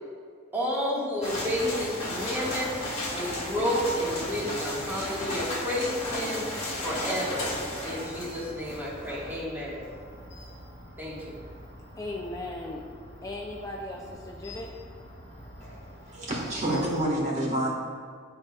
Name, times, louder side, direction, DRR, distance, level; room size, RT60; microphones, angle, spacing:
voice 1, 0.5-2.8 3.1-6.5 6.8-7.5 7.8-9.8 11.0-11.4, equal, 10° right, -7 dB, 1.6 m, -31 dB
sound 1, 1.2-17.0, left 1 dB, 30° left, 1.4 m, -36 dB
voice 2, 12.0-12.8 13.2-14.7, left 2 dB, 15° left, -1 dB, 0.4 m, -37 dB
voice 3, 16.1-17.7, right 1 dB, 35° right, -4 dB, 1.5 m, -28 dB
11.5 x 4.8 x 2.3 m, 2.1 s
head